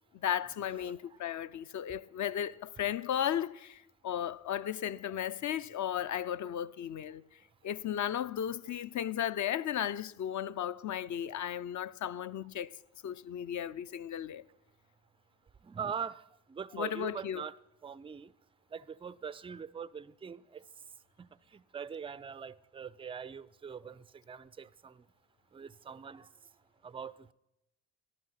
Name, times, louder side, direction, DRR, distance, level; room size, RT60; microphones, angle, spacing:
voice 1, 0.1-7.2 7.6-12.8 13.0-14.4 16.7-17.4, left 10 dB, 45° left, 0.6 m, -35 dB
voice 2, 15.6-16.2 16.5-17.6 17.8-18.3 18.7-20.6 21.2-25.0 25.5-26.3 26.8-27.3, right 7 dB, 15° right, 0.4 m, -42 dB
14.0 x 11.0 x 5.7 m
hypercardioid pair, 65°, 44 cm